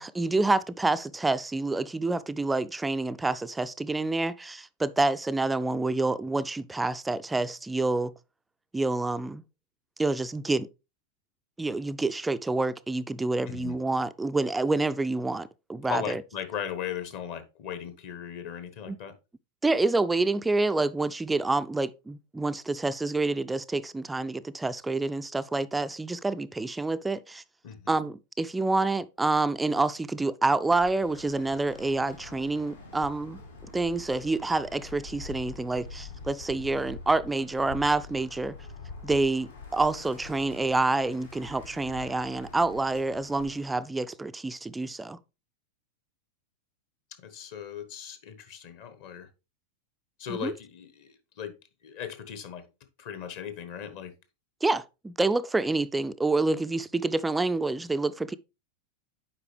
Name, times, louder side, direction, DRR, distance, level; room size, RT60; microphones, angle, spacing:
voice 1, 0.0-8.1 8.7-9.4 10.0-10.7 11.6-16.2 18.9-19.0 19.6-27.4 27.9-33.4 33.7-38.6 39.0-45.2 50.3-50.5 54.6-58.3, right 3 dB, 10° right, 0.3 m, -27 dB
voice 2, 15.9-19.1 27.6-27.9 47.2-49.3 50.2-51.5 51.8-52.6 53.0-54.1, left 8 dB, 50° left, 1.2 m, -37 dB
Bird, 30.7-43.8, left 4 dB, 75° left, 2.7 m, -45 dB
8.2 x 5.0 x 3.3 m
figure-of-eight pair, 90°, 0 cm